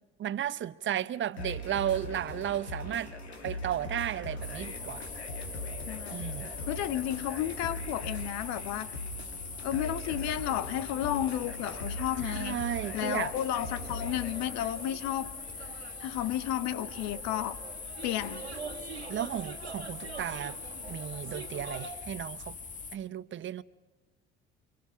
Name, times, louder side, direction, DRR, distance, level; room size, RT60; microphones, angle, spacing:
voice 1, 0.2-3.1 3.4-5.2 6.1-6.5 12.2-13.3 19.1-20.6 20.9-22.6 22.9-23.6, right 11 dB, 40° right, 0.9 m, -34 dB
sound 1, 1.4-14.5, left 1 dB, 85° left, 2.0 m, -40 dB
sound 2, 4.4-23.0, left 5 dB, 25° left, 1.4 m, -42 dB
voice 2, 5.9-6.2 6.7-8.9 9.6-12.6 12.9-15.4 16.0-17.6 18.0-18.5, left 12 dB, 60° left, 1.1 m, -32 dB
sound 3, 14.0-21.9, right 6 dB, 85° right, 1.9 m, -45 dB
29.5 x 24.5 x 5.8 m
figure-of-eight pair, 55°, 31 cm